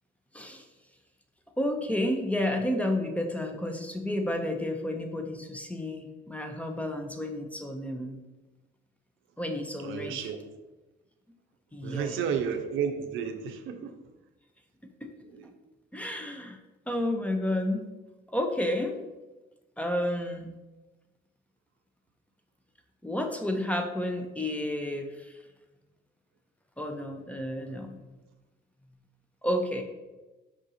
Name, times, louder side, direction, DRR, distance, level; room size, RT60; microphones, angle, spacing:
voice 1, 0.3-0.6 1.6-8.2 9.4-10.2 11.7-12.1 15.0-15.1 15.9-16.6 16.9-17.9 18.3-19.0 19.8-20.5 23.0-25.3 26.8-28.0 29.4-29.8, left 1 dB, 5° left, 4 dB, 0.6 m, -31 dB
voice 2, 9.8-10.4 11.8-13.9 15.2-15.5, right 7 dB, 85° right, 7 dB, 0.5 m, -32 dB
4.9 x 2.5 x 4.1 m, 1.1 s
cardioid pair, 90°, 20 cm